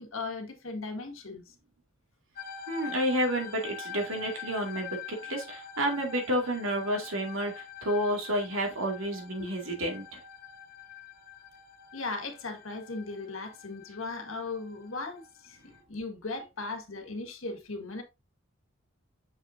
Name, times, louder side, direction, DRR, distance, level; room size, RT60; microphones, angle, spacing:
voice 1, 0.0-1.4 9.4-9.5 11.9-15.6 15.9-18.0, left 3 dB, 75° left, 1.6 m, -37 dB
sound 1, 2.4-15.8, left 7 dB, 45° left, 1.0 m, -45 dB
voice 2, 2.7-10.2, equal, 75° right, 2.1 m, -30 dB
6.6 x 5.8 x 2.6 m
head